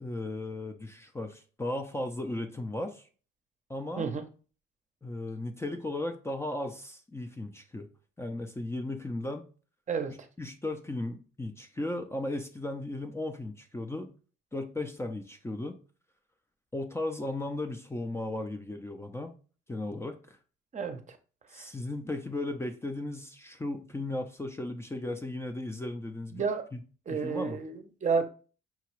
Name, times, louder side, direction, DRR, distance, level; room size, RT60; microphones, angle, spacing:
voice 1, 0.0-3.1 3.7-4.1 5.0-7.9 8.2-9.4 10.1-14.1 14.5-15.8 16.7-19.3 19.7-20.4 21.5-26.5 26.7-26.8 27.1-27.6, left 2 dB, 15° left, 0.5 m, -36 dB
voice 2, 20.7-21.2 21.5-21.7 26.3-26.6 27.1-28.3, right 5 dB, 40° right, 0.7 m, -31 dB
5.8 x 2.3 x 3.1 m
cardioid pair, 90°, 20 cm